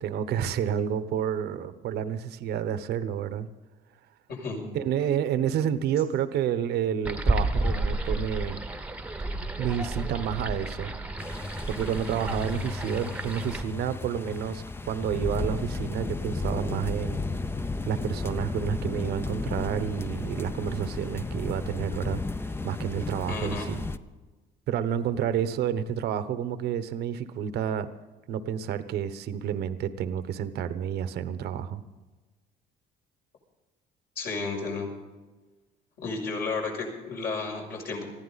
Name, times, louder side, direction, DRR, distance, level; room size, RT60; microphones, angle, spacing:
voice 1, 0.0-3.5 4.7-8.6 9.6-10.9 11.7-17.2 17.8-23.8 24.7-27.9 28.3-31.8, right 9 dB, 75° right, 12 dB, 1.0 m, -30 dB
voice 2, 4.3-4.6 23.3-23.7 34.1-34.9 36.0-38.0, left 4 dB, 65° left, -1 dB, 6.6 m, -32 dB
sound 1, 7.0-13.6, right 2 dB, 10° right, 1.0 m, -31 dB
sound 2, 11.2-24.0, left 3 dB, 15° left, 0.6 m, -34 dB
21.0 x 15.0 x 4.1 m, 1.2 s
cardioid pair, 110°, 17 cm